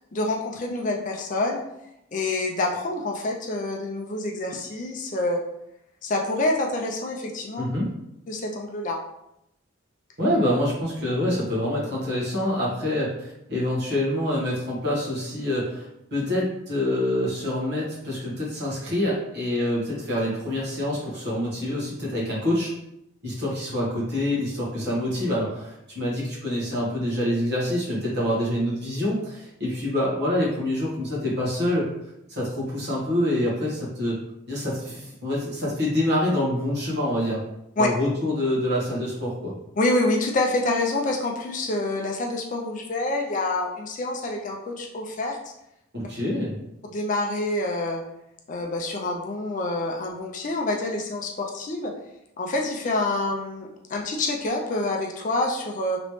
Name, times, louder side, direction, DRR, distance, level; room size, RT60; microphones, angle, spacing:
voice 1, 0.1-1.6 2.1-5.4 6.0-7.6 8.3-9.0 37.8-37.9 39.8-45.4 46.8-48.0 48.5-51.9 52.4-56.0, left 2 dB, 40° left, 1 dB, 0.4 m, -27 dB
voice 2, 7.6-7.9 10.2-22.7 23.2-31.9 32.3-34.2 34.5-37.4 37.8-39.5 45.9-46.6, left 1 dB, 50° right, -5 dB, 1.2 m, -26 dB
3.0 x 3.0 x 3.1 m, 0.82 s
head